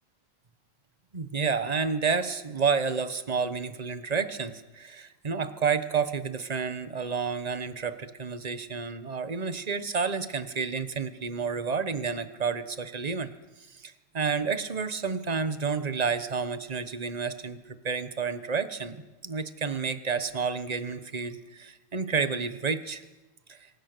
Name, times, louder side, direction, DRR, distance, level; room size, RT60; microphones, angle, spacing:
voice 1, 1.1-13.3 13.7-19.0 19.2-23.0 23.5-23.6, right 5 dB, 30° right, 11 dB, 0.8 m, -30 dB
27.5 x 23.5 x 6.8 m, 1.1 s
omnidirectional pair, 2.4 m